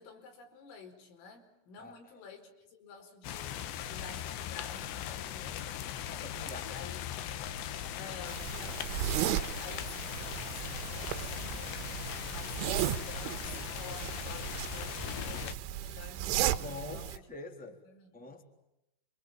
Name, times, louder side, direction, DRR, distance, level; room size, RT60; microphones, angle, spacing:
voice 1, 0.0-5.9 6.6-7.0 7.9-11.7 12.3-17.3 17.9-18.1, left 5 dB, 85° left, 5 dB, 7.3 m, -51 dB
sound 1, 3.2-15.6, left 10 dB, 70° left, 3.2 m, -39 dB
voice 2, 6.1-6.7 9.6-9.8 16.6-17.8 18.1-18.4, left 3 dB, ahead, 4 dB, 2.7 m, -45 dB
sound 2, 8.3-17.2, right 12 dB, 80° right, 3.5 m, -35 dB
28.0 x 26.5 x 7.5 m, 0.87 s
omnidirectional pair, 5.7 m